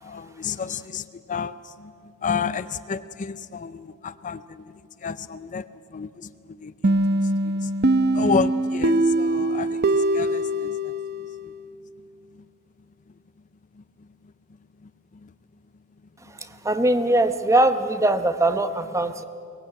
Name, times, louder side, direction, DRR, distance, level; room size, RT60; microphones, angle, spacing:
voice 1, 0.0-4.6 5.0-7.0 7.2-7.7 8.1-10.9 11.5-11.6 14.8-14.9 15.2-15.3, left 5 dB, 35° left, 14 dB, 0.4 m, -31 dB
sound 1, 6.8-11.5, right 1 dB, 50° right, 0.7 m, -22 dB
voice 2, 16.6-19.2, right 1 dB, 15° right, 10 dB, 0.9 m, -21 dB
23.0 x 19.0 x 8.6 m, 2.7 s
head